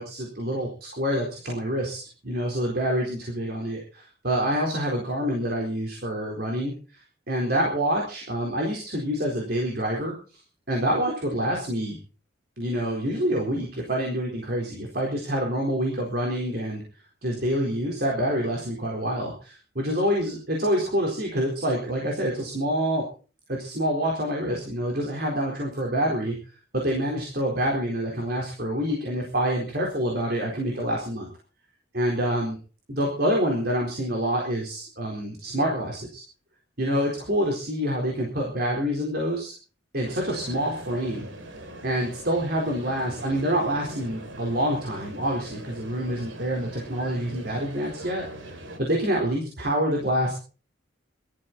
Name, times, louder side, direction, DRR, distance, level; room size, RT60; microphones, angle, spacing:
voice 1, 0.0-6.7 7.3-10.1 10.7-12.0 12.6-16.8 17.2-23.0 23.5-26.4 26.8-31.3 31.9-32.6 32.9-36.2 36.8-39.5 39.9-41.3 41.8-50.3, equal, 50° right, 0 dB, 4.2 m, -27 dB
sound 1, 40.0-48.8, right 1 dB, 75° right, 2.6 m, -41 dB
20.0 x 14.0 x 4.2 m, 0.38 s
head